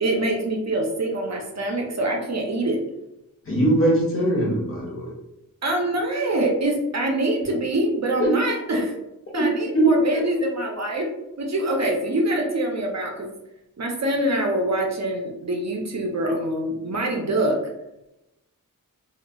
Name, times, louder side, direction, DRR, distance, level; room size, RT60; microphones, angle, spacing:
voice 1, 0.0-2.8 5.6-9.0 9.3-11.1 11.4-13.3 13.8-17.6, right 1 dB, 55° right, 1 dB, 0.5 m, -25 dB
voice 2, 3.5-5.1 8.2-8.3 9.7-9.9, right 1 dB, 40° left, -4 dB, 0.9 m, -21 dB
2.8 x 2.3 x 2.2 m, 0.91 s
wide cardioid pair, 85°, 33 cm